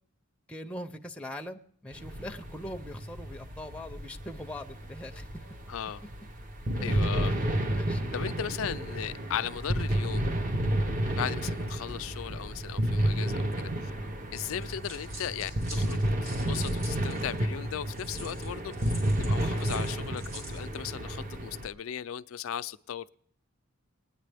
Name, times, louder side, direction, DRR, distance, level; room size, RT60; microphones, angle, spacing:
voice 1, 0.5-5.4 6.8-7.0 7.7-8.1, left 1 dB, 5° left, 0.5 m, -41 dB
sound 1, 1.9-21.7, right 1 dB, 40° right, 0.7 m, -31 dB
voice 2, 5.7-6.0 6.8-7.3 8.1-10.2 11.2-13.7 14.3-18.9 19.2-23.1, left 9 dB, 70° left, 0.4 m, -37 dB
sound 2, 14.6-17.4 17.9-20.6, right 1 dB, 70° right, 3.9 m, -46 dB
19.5 x 9.6 x 3.4 m
head